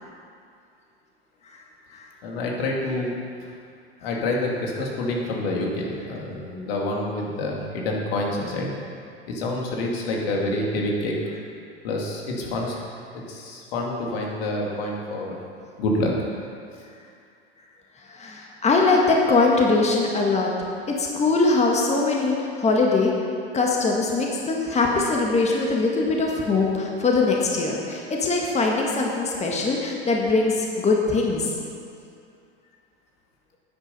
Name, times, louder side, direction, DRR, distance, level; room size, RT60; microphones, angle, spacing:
voice 1, 2.2-3.1 4.0-8.7 9.3-11.1 11.8-12.8 13.1-15.4 15.8-16.1, left 2 dB, 70° left, -2 dB, 2.4 m, -27 dB
voice 2, 18.1-20.5 20.9-23.1 23.5-31.5, left 3 dB, 20° left, -1 dB, 1.7 m, -22 dB
9.8 x 9.4 x 5.5 m, 2.4 s
hypercardioid pair, 90°, 31 cm